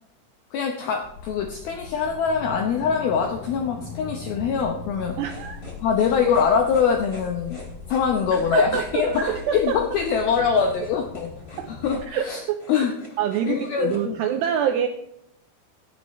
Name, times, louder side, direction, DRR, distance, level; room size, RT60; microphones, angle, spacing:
voice 1, 0.5-5.2 5.8-7.6 7.9-11.3 11.8-12.4 12.7-12.9 13.4-14.2, left 6 dB, 80° left, 3 dB, 2.2 m, -23 dB
sound 1, 1.0-12.0, left 4 dB, 60° left, 5.6 m, -42 dB
sound 2, 1.1-11.7 12.1-12.2, left 3 dB, 45° left, 6.7 m, -44 dB
sound 3, 5.2-14.0, left 1 dB, 15° left, 2.2 m, -45 dB
voice 2, 5.2-5.6 8.5-9.8 11.6-11.7 12.1-12.6 13.2-14.9, right 9 dB, 90° right, 6 dB, 2.4 m, -26 dB
16.5 x 12.5 x 3.2 m, 0.76 s
omnidirectional pair, 5.7 m